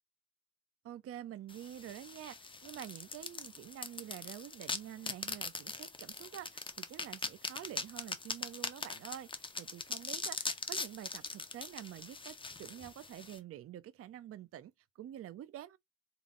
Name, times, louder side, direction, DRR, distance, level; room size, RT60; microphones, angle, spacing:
voice 1, 0.8-15.8, right 11 dB, 50° right, 0.5 m, -48 dB
sound 1, 1.5-13.4, left 3 dB, 15° left, 0.6 m, -41 dB
3.8 x 2.2 x 3.7 m
cardioid pair, 90°, 30 cm